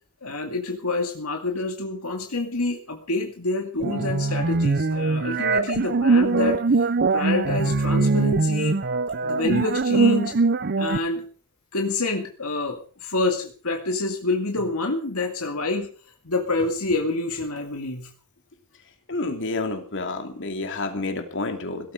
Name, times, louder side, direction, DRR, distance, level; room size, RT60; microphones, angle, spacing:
voice 1, 0.2-6.6 7.1-8.8 9.2-10.4 10.8-11.2 11.7-15.9 16.2-18.1, left 2 dB, 85° left, 3 dB, 2.3 m, -27 dB
sound 1, 3.8-11.0, right 3 dB, 50° right, 0.7 m, -22 dB
voice 2, 19.1-21.9, left 3 dB, 60° left, 5 dB, 2.9 m, -29 dB
17.5 x 13.5 x 5.0 m, 0.41 s
head